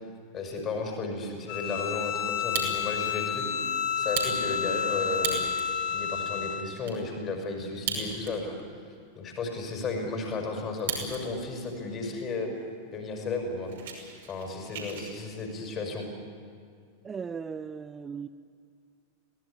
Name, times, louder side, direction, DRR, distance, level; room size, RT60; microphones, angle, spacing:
voice 1, 0.3-3.5 3.7-5.5 5.9-8.8 9.2-12.5 12.9-13.7 14.3-16.0, left 3 dB, 30° left, 3 dB, 5.6 m, -34 dB
Bowed string instrument, 1.5-6.7, left 8 dB, 45° left, 2.1 m, -30 dB
Fire, 2.3-3.1 3.5-3.6 4.0-5.7 6.2-6.3 6.5-7.0 7.7-8.5 8.8-8.9 9.5-11.2 11.5-12.0 12.6-12.7 12.9-13.1 13.4-15.1, right 6 dB, 60° right, 5.8 m, -35 dB
voice 2, 17.0-18.3, right 6 dB, 20° right, 12 dB, 0.6 m, -37 dB
23.5 x 18.0 x 9.8 m, 2.3 s
figure-of-eight pair, 90°, 0 cm